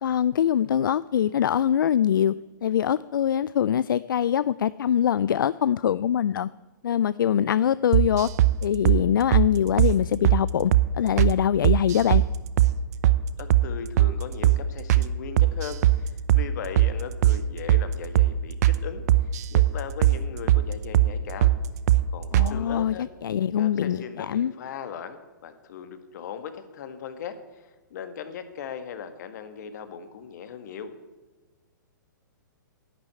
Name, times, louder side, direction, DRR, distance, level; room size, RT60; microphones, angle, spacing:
voice 1, 0.0-2.3 2.6-6.5 6.8-8.3 8.6-12.2 22.3-23.0 23.2-24.5, left 9 dB, 75° left, 18 dB, 0.4 m, -23 dB
sound 1, 7.9-8.5 8.9-9.0 9.3-9.5 9.8-9.9 10.2-10.4 10.7-10.9 11.2-11.3 11.6-12.3 12.6-12.7 13.0-13.2 13.5-13.7 14.0-14.1 14.4-14.6 14.9-15.1 15.4-16.0 16.3-16.5 16.8-16.9 17.2-17.4 17.7-17.9 18.2-18.3 18.6-18.8 19.1-19.7 20.0-20.2 20.5-20.6 20.9-21.1 21.4-21.6 21.9-22.0 22.3-22.5, right 14 dB, 50° right, 0.7 m, -19 dB
voice 2, 13.4-19.0 19.5-21.5 22.1-23.1 23.6-30.9, left 7 dB, 55° left, 9 dB, 1.7 m, -38 dB
11.5 x 9.1 x 9.0 m, 1.2 s
hypercardioid pair, 140°, 11 cm